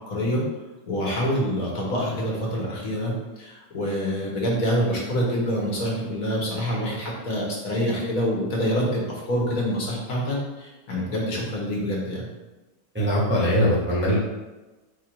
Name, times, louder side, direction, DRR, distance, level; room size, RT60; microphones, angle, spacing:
voice 1, 0.1-0.4 0.9-3.1 3.4-12.3, equal, 65° left, -3 dB, 1.5 m, -26 dB
voice 2, 12.9-14.2, equal, 10° right, -7 dB, 0.6 m, -21 dB
4.4 x 2.5 x 4.4 m, 1.1 s
omnidirectional pair, 1.6 m